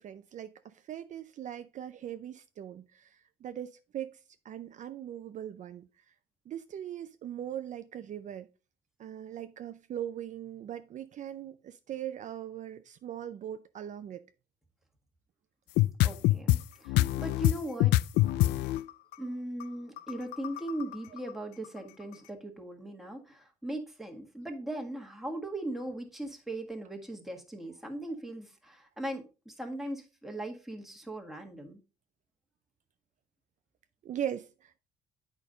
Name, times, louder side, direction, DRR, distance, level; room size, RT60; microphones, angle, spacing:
voice 1, 0.0-5.9 6.5-8.5 9.0-14.2 19.2-19.3 34.0-34.8, right 10 dB, 45° right, 0.5 m, -40 dB
sound 1, 15.8-16.6 16.9-19.1 19.6-19.7 20.0-21.3, left 17 dB, 85° left, 0.4 m, -25 dB
voice 2, 16.0-17.9 19.2-31.8, right 1 dB, ahead, 1.6 m, -39 dB
8.5 x 5.2 x 3.8 m
cardioid pair, 110°, 17 cm